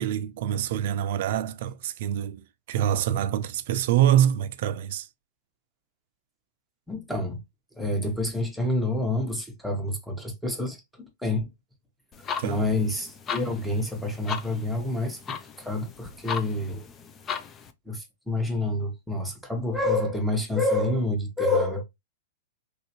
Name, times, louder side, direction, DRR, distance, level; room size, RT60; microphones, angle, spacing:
voice 1, 0.0-5.1 12.4-12.7, right 11 dB, 60° right, 0.4 m, -25 dB
voice 2, 6.9-7.4 7.7-11.5 12.4-16.8 17.9-21.8, left 2 dB, ahead, 1.0 m, -28 dB
sound 1, 12.1-17.7, left 7 dB, 25° left, 0.4 m, -37 dB
3.3 x 2.7 x 2.8 m
hypercardioid pair, 140°, 0 cm